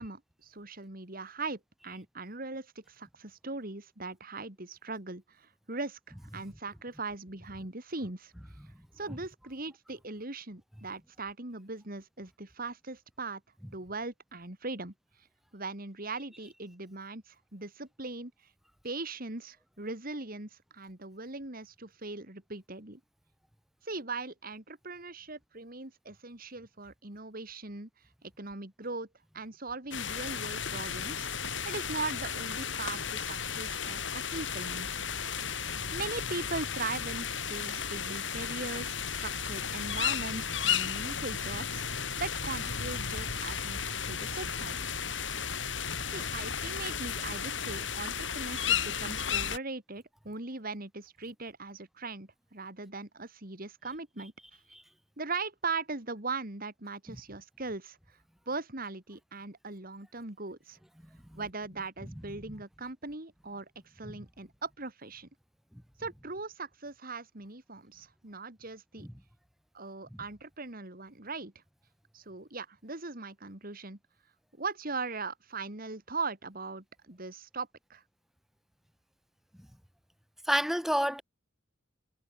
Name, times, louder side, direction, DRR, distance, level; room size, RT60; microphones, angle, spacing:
voice 1, 0.0-8.3 9.0-13.4 13.7-14.9 15.5-18.3 18.8-23.0 23.8-27.9 28.2-29.1 29.3-31.3 31.6-34.9 35.9-43.8 44.1-44.8 46.1-54.3 55.2-58.0 58.5-60.8 61.3-63.7 63.9-65.3 66.0-69.1 69.7-71.5 72.1-74.0 74.6-78.0, right 3 dB, 45° right, 2.9 m, -40 dB
sound 1, 29.9-49.6, left 7 dB, 65° left, 6.8 m, -34 dB
voice 2, 80.5-81.2, equal, ahead, 1.0 m, -28 dB
head